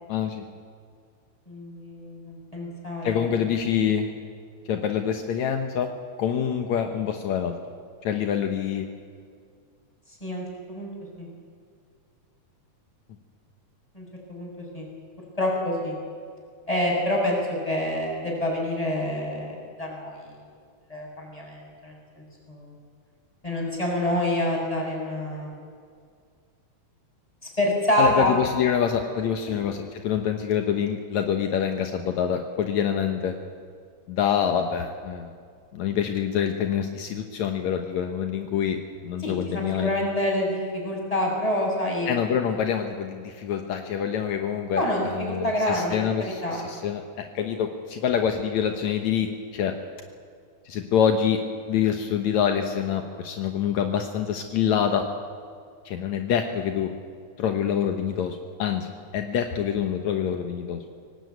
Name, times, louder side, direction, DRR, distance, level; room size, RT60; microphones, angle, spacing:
voice 1, 0.1-0.5 3.0-4.1 4.7-5.9 6.2-7.6 8.0-8.9 28.0-33.3 34.1-35.3 35.7-39.9 42.1-49.3 49.5-49.7 50.7-51.4 51.7-55.1 55.9-56.9 57.4-60.8, left 8 dB, 75° left, 5 dB, 2.4 m, -26 dB
voice 2, 1.5-3.4 10.2-10.9 11.2-11.3 13.9-14.5 14.7-14.9 15.4-15.9 16.7-20.2 20.9-21.9 22.5-22.7 23.4-25.5 27.4-28.3 29.5-29.6 39.2-42.1 44.7-46.1 46.4-46.6, left 1 dB, 10° left, -1 dB, 6.5 m, -27 dB
24.0 x 18.5 x 9.4 m, 2.1 s
omnidirectional pair, 3.3 m